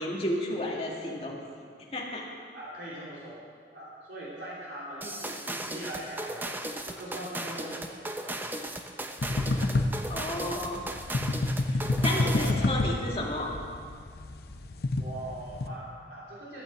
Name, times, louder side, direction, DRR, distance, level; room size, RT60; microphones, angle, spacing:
voice 1, 0.0-1.4 1.9-2.3 5.2-5.3 10.1-10.8 11.7-13.5, left 1 dB, 35° left, -2 dB, 2.1 m, -32 dB
voice 2, 2.5-3.4 3.7-6.5 6.8-8.5 9.2-9.9 11.4-11.6 12.1-12.6 13.0-13.1 15.0-16.6, right 1 dB, 75° right, -7 dB, 3.2 m, -41 dB
sound 1, 5.0-12.7, right 1 dB, 10° right, 0.7 m, -36 dB
sound 2, 9.2-15.7, left 2 dB, 60° left, 0.7 m, -29 dB
13.5 x 9.3 x 7.3 m, 2.1 s
head